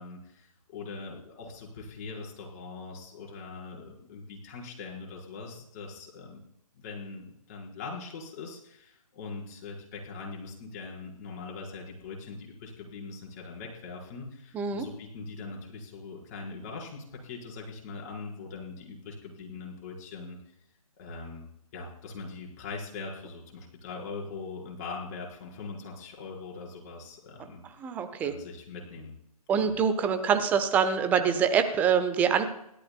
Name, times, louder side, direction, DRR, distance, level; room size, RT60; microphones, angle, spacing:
voice 1, 0.0-6.4 6.7-20.4 21.0-27.6 28.2-29.1 29.6-29.7, left 4 dB, 25° left, -2 dB, 4.9 m, -41 dB
voice 2, 14.5-14.9 27.8-28.3 29.5-32.5, right 7 dB, 10° right, 8 dB, 0.9 m, -25 dB
29.5 x 13.5 x 2.3 m, 0.78 s
figure-of-eight pair, 140°, 20 cm